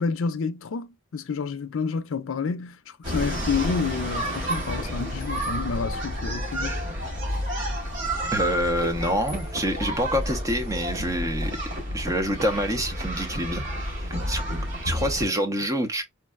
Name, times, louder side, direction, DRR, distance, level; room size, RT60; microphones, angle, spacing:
voice 1, 0.0-2.8 3.1-6.8, left 5 dB, 70° left, 0.4 m, -29 dB
sound 1, 3.0-15.3, equal, 65° right, 2.2 m, -30 dB
voice 2, 8.3-11.5 11.9-13.7 14.0-14.4 14.8-16.0, equal, 15° right, 0.6 m, -26 dB
4.5 x 2.2 x 2.2 m
head